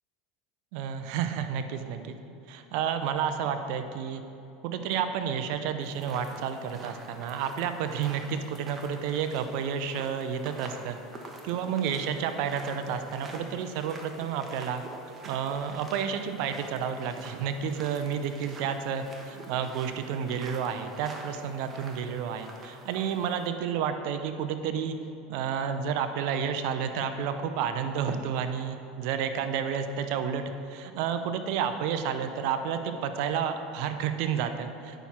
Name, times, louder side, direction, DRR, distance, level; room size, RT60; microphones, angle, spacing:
voice 1, 0.7-2.2 2.5-4.2 4.6-11.0 11.4-14.8 15.2-25.0 25.3-30.4 30.7-35.0, right 7 dB, 65° right, 8 dB, 0.6 m, -31 dB
sound 1, 5.8-23.5, right 2 dB, 30° right, 1.1 m, -47 dB
9.2 x 5.9 x 4.3 m, 2.7 s
hypercardioid pair, 95°, 0 cm